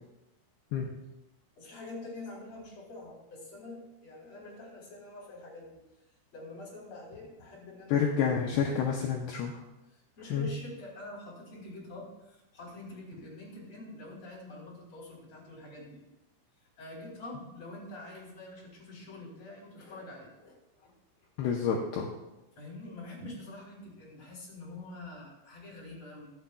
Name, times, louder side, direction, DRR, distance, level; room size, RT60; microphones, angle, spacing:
voice 1, 1.6-5.8 6.3-8.9 9.9-16.0 16.8-20.9 22.6-26.3, left 2 dB, 35° left, -4 dB, 4.6 m, -46 dB
voice 2, 7.9-9.6 10.3-10.5 21.4-22.1, left 7 dB, 80° left, 0 dB, 2.4 m, -29 dB
23.0 x 7.9 x 2.3 m, 0.99 s
omnidirectional pair, 5.6 m